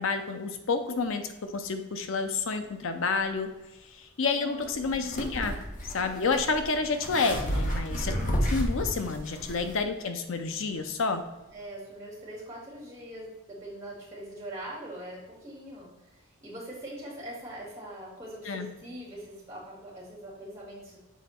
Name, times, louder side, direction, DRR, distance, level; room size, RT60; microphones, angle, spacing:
voice 1, 0.0-3.5 3.8-5.5 5.9-8.2 8.5-11.2 18.4-18.7, left 4 dB, 70° left, 8 dB, 0.6 m, -29 dB
voice 2, 4.4-5.0 8.8-9.0 11.5-21.0, right 1 dB, 15° right, -6 dB, 2.4 m, -42 dB
sound 1, 4.6-9.8, equal, 35° left, 1.1 m, -32 dB
7.2 x 4.1 x 4.3 m, 1.1 s
head